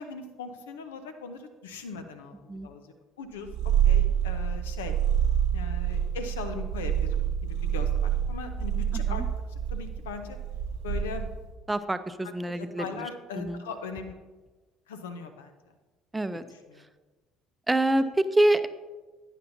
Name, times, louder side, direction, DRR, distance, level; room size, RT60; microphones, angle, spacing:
voice 1, 0.0-3.5 3.8-4.9 5.5-9.2 9.5-10.4 10.8-11.3 12.5-14.2 14.9-15.7 16.3-16.8, left 5 dB, 85° left, 8 dB, 0.8 m, -40 dB
Purr, 3.5-11.5, right 9 dB, 80° right, 1.0 m, -27 dB
voice 2, 8.9-9.2 11.7-13.1 13.3-13.6 16.1-16.4 17.7-18.7, right 1 dB, 15° right, 12 dB, 0.6 m, -26 dB
11.5 x 9.1 x 2.7 m, 1.3 s
hypercardioid pair, 60°, 0 cm